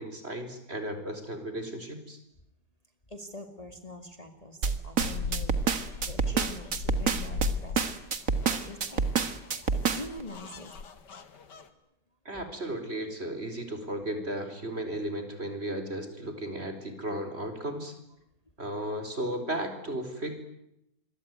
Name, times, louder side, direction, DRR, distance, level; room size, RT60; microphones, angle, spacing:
voice 1, 0.0-2.2 12.2-17.9 18.6-20.3, right 1 dB, 35° right, 8 dB, 4.5 m, -35 dB
voice 2, 3.1-5.5 6.0-9.0 9.7-11.0, left 2 dB, 20° left, 6 dB, 2.3 m, -44 dB
sound 1, 4.6-10.2, right 5 dB, 50° right, 2.1 m, -27 dB
sound 2, 5.0-11.7, left 4 dB, 85° left, 2.5 m, -39 dB
27.5 x 23.0 x 9.5 m, 0.83 s
omnidirectional pair, 1.8 m